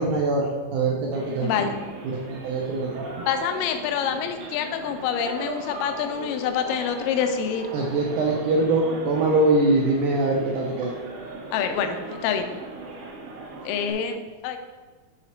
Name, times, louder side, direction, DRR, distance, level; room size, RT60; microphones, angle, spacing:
voice 1, 0.0-1.7 2.0-3.1 7.7-10.9, right 2 dB, 80° right, -1 dB, 1.8 m, -23 dB
sound 1, 1.1-13.9, right 3 dB, 65° right, 2.1 m, -38 dB
voice 2, 1.4-1.8 3.3-7.7 11.5-12.5 13.7-14.2 14.4-14.6, left 8 dB, 85° left, 6 dB, 2.0 m, -26 dB
7.4 x 4.1 x 4.4 m, 1.3 s
omnidirectional pair, 4.4 m